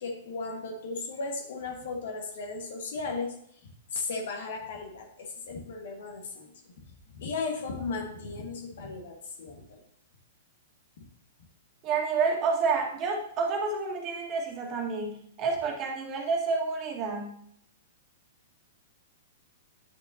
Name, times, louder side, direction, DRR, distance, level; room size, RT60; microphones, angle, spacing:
voice 1, 0.0-3.3 3.9-9.8 11.0-11.1, left 4 dB, 65° left, 2 dB, 1.7 m, -36 dB
voice 2, 11.8-17.4, right 4 dB, 35° right, 1 dB, 1.9 m, -29 dB
10.0 x 6.4 x 2.8 m, 0.68 s
hypercardioid pair, 110°, 0 cm